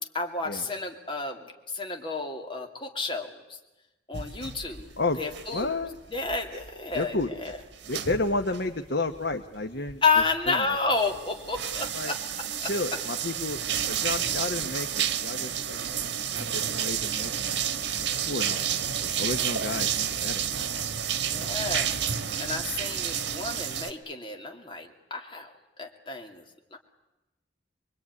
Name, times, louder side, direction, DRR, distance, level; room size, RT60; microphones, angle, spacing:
voice 1, 0.1-3.6 4.1-4.9 5.2-5.8 6.1-7.2 7.4-7.6 10.0-12.7 21.2-21.9 22.4-25.5 25.8-26.4 26.7-26.8, left 4 dB, 30° left, 3 dB, 2.8 m, -30 dB
sound 1, 4.1-5.8 6.1-8.7 9.1-9.4 9.9-10.5 10.9-23.9, right 8 dB, 85° right, 1.4 m, -30 dB
voice 2, 5.5-6.0 6.9-7.3 7.9-10.0 10.5-10.6 11.9-12.1 12.6-13.6 13.9-20.7, left 2 dB, 70° left, 6 dB, 1.2 m, -32 dB
25.0 x 23.0 x 9.8 m, 1.0 s
head